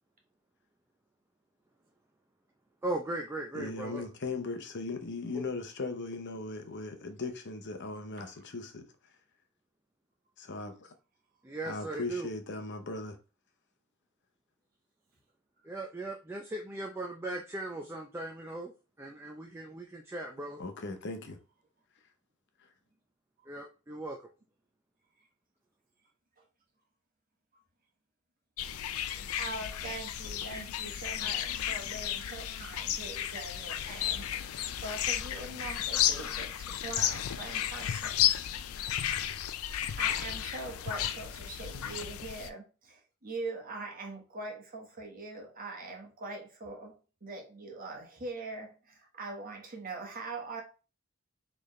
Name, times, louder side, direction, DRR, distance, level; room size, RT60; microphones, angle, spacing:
voice 1, 2.8-4.0 5.3-5.4 11.4-12.3 15.6-18.7 19.0-20.6 23.5-24.2, right 2 dB, 10° right, 0.5 m, -38 dB
voice 2, 3.5-8.9 10.4-10.9 11.6-13.2 20.6-21.4, left 3 dB, 55° left, 0.8 m, -38 dB
sound 1, 28.6-42.5, left 10 dB, 80° left, 0.4 m, -33 dB
voice 3, 29.4-34.3 34.6-38.2 39.6-50.6, right 3 dB, 40° right, 1.3 m, -42 dB
4.3 x 3.4 x 3.1 m
head